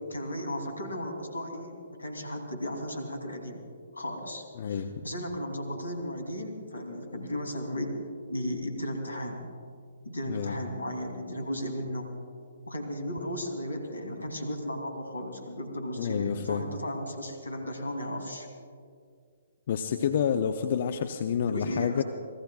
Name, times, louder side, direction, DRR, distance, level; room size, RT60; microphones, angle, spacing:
voice 1, 0.1-3.6 3.9-9.4 10.0-12.1 12.7-18.5 21.5-22.0, equal, 75° left, 3 dB, 3.1 m, -35 dB
voice 2, 4.6-4.9 10.3-10.6 16.0-16.7 19.7-22.0, left 7 dB, 45° left, 8 dB, 0.6 m, -28 dB
29.5 x 19.5 x 2.4 m, 2.1 s
figure-of-eight pair, 130°, 0 cm